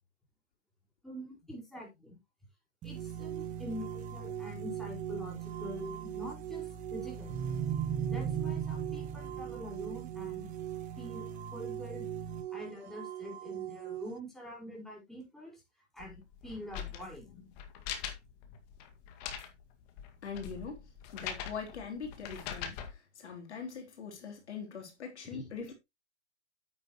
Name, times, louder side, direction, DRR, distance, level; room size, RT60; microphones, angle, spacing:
voice 1, 1.0-2.2 2.8-6.7 6.9-7.3 7.8-10.5 11.0-11.3 11.5-12.1 12.5-15.6 15.9-17.2 25.2-25.5, equal, ahead, 4.5 m, -45 dB
sound 1, 2.8-12.4, right 7 dB, 20° right, 1.5 m, -39 dB
sound 2, 3.0-14.2, right 13 dB, 65° right, 0.7 m, -42 dB
sound 3, 16.0-22.9, left 9 dB, 35° left, 2.0 m, -43 dB
voice 2, 20.2-20.9 21.1-25.7, left 5 dB, 75° left, 3.5 m, -42 dB
9.1 x 8.2 x 3.0 m
hypercardioid pair, 130°, 34 cm